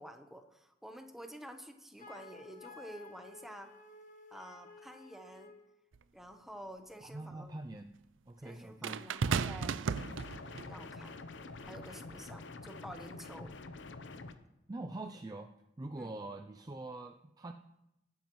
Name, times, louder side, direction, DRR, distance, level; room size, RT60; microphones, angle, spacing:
voice 1, 0.0-3.7 4.3-5.5 6.1-7.5 8.4-9.8 10.4-11.2 11.6-13.5 15.9-16.1, equal, ahead, 5 dB, 1.0 m, -50 dB
Wind instrument woodwind instrument, 2.0-5.7, left 3 dB, 40° left, 1.2 m, -54 dB
sound 1, 5.9-6.0 8.8-10.7 11.6-11.9, right 5 dB, 85° right, 0.5 m, -34 dB
voice 2, 7.0-8.0 8.3-9.0 14.7-15.5 15.8-17.5, right 2 dB, 20° right, 5 dB, 0.4 m, -44 dB
sound 2, 10.0-14.3, left 3 dB, 75° left, 0.7 m, -47 dB
19.5 x 9.2 x 3.1 m, 0.87 s
head